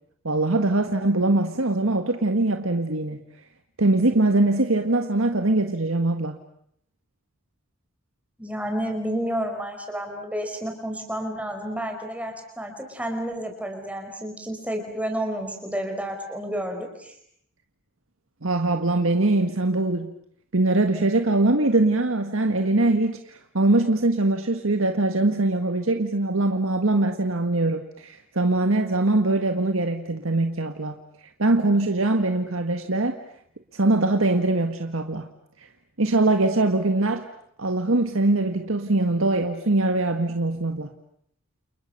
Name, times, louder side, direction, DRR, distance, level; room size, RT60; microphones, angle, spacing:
voice 1, 0.2-3.2 3.8-6.4 18.4-20.1 20.5-31.0 31.4-33.1 33.7-35.3 36.0-37.2 37.6-40.9, right 2 dB, 75° right, 6 dB, 1.7 m, -22 dB
voice 2, 8.4-17.1, right 1 dB, 5° right, 4 dB, 5.1 m, -30 dB
29.5 x 29.5 x 6.8 m, 0.70 s
head